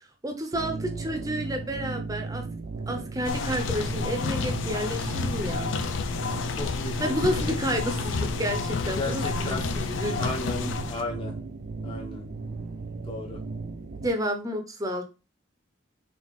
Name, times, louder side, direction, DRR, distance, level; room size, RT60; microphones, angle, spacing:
voice 1, 0.2-2.4 2.9-5.8 7.0-10.2 14.0-15.0, equal, 20° right, 4 dB, 0.7 m, -30 dB
sound 1, 0.5-14.1, right 3 dB, 55° right, 0.6 m, -36 dB
sound 2, 3.2-11.0, left 4 dB, 75° left, 0.5 m, -30 dB
voice 2, 6.6-7.6 8.9-9.7 10.2-11.4 11.8-12.2 13.1-13.4, left 2 dB, 30° left, -2 dB, 1.0 m, -34 dB
4.1 x 2.9 x 3.6 m, 0.30 s
head